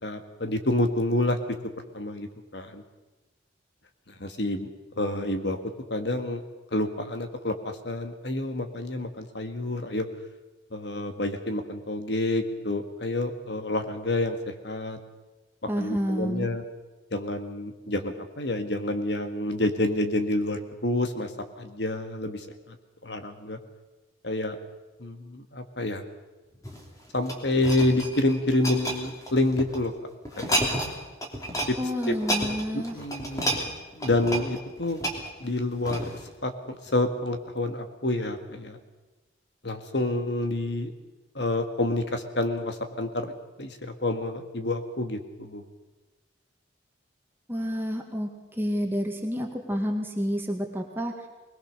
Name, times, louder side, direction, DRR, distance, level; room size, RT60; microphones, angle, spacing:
voice 1, 0.0-2.8 4.1-4.7 5.0-6.4 6.7-10.1 10.7-15.0 15.8-16.6 17.1-21.3 21.6-22.8 23.0-23.6 24.2-24.6 25.0-26.0 27.1-29.9 30.4-30.6 31.7-31.8 32.1-32.2 32.7-33.6 34.0-35.0 35.4-36.1 36.4-38.8 39.6-40.9 41.4-43.3 43.6-45.6, left 1 dB, 60° left, 7 dB, 1.9 m, -28 dB
voice 2, 15.7-16.5 31.8-33.0 47.5-48.3 48.6-51.1, equal, 10° right, 2 dB, 1.9 m, -29 dB
sound 1, 26.5-29.8 30.3-31.0 31.2-31.7 32.0-36.3 36.9-37.0, right 1 dB, 15° left, 3.0 m, -31 dB
21.5 x 20.0 x 6.7 m, 1.2 s
head